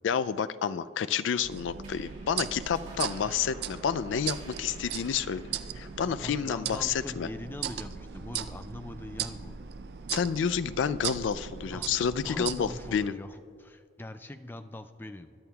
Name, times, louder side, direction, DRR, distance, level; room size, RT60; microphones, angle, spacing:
voice 1, 0.0-5.5 5.7-7.3 10.1-13.2, left 7 dB, 85° left, 14 dB, 0.4 m, -29 dB
sound 1, 1.4-13.1, right 8 dB, 55° right, 0.4 m, -38 dB
sound 2, 1.8-8.6, right 2 dB, 40° right, 2.5 m, -53 dB
voice 2, 6.2-9.6 11.7-15.4, left 1 dB, 10° left, 10 dB, 0.3 m, -42 dB
21.0 x 11.0 x 2.3 m, 2.4 s
head